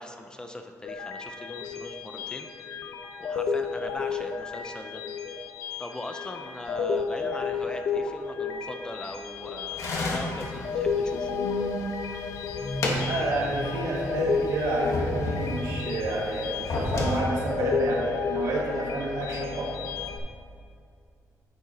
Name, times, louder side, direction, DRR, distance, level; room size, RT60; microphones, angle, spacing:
voice 1, 0.0-2.5 3.2-5.0 5.8-11.3, left 1 dB, 15° left, 5 dB, 0.4 m, -40 dB
sound 1, 0.8-20.2, left 5 dB, 80° left, 0.7 m, -32 dB
sound 2, 9.8-11.9 12.3-13.7 14.0-14.1 14.7-15.9 16.5-17.2, left 2 dB, 60° left, 1.3 m, -31 dB
voice 2, 13.0-19.7, right 2 dB, 85° right, -3 dB, 1.8 m, -30 dB
9.6 x 7.6 x 2.8 m, 2.3 s
wide cardioid pair, 165°, 6 cm